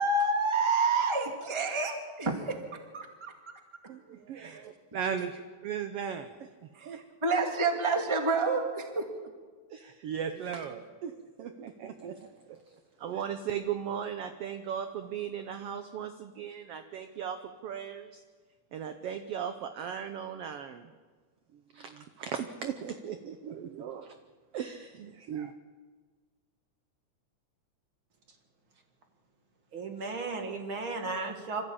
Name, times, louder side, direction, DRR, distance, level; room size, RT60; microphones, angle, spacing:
voice 1, 0.0-3.3 4.4-4.6 5.1-5.2 6.7-9.1, right 3 dB, 10° right, 4 dB, 1.6 m, -29 dB
voice 2, 3.9-6.5 6.8-7.0 9.7-11.1 11.4-12.2 13.0-17.4 17.6-18.2 18.7-20.9 21.7-24.1 24.5-25.5, right 8 dB, 65° right, 8 dB, 1.6 m, -37 dB
voice 3, 29.7-31.6, right 3 dB, 45° right, 5 dB, 2.2 m, -35 dB
26.0 x 14.0 x 8.6 m, 1.5 s
omnidirectional pair, 3.3 m